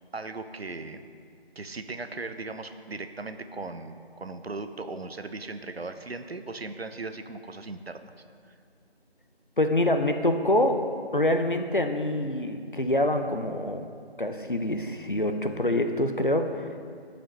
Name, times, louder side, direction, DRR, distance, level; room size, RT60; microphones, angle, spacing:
voice 1, 0.1-1.0 1.6-8.1, right 3 dB, 70° right, 9 dB, 0.6 m, -38 dB
voice 2, 9.6-10.8 11.1-13.9 14.2-16.7, left 1 dB, 55° left, 6 dB, 0.5 m, -25 dB
13.5 x 5.1 x 3.0 m, 2.2 s
figure-of-eight pair, 180°, 32 cm